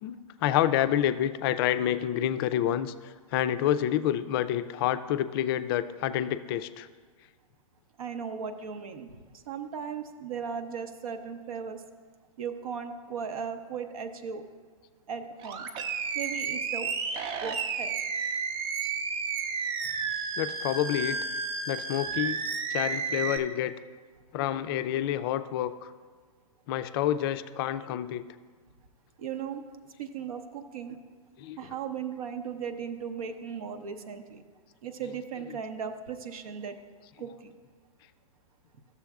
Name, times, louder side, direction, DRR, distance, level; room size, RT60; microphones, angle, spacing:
voice 1, 0.0-2.9 3.3-6.9 20.4-21.2 21.7-22.4 22.7-23.7 24.3-25.9 26.7-28.2 31.4-31.8 35.0-35.6, left 11 dB, 40° left, 12 dB, 0.4 m, -28 dB
voice 2, 8.0-9.1 9.5-11.8 12.4-14.4 15.1-15.6 16.1-16.9 17.4-18.0 29.2-29.6 30.0-31.0 31.6-34.4 34.8-36.7 37.2-37.5, right 6 dB, 70° right, 7 dB, 0.7 m, -37 dB
Animal, 15.4-23.4, right 5 dB, 30° right, 0.5 m, -32 dB
13.0 x 6.9 x 2.3 m, 1.5 s
hypercardioid pair, 130°, 19 cm